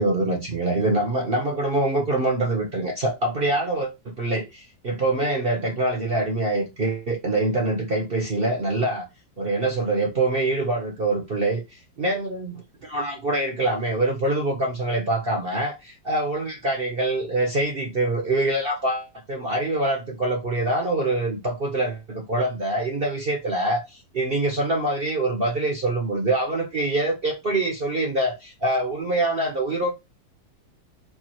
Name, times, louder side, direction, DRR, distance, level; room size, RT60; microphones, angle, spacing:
voice 1, 0.0-9.0 9.4-29.9, right 2 dB, 40° right, 0.9 m, -25 dB
4.7 x 2.4 x 4.4 m
omnidirectional pair, 1.8 m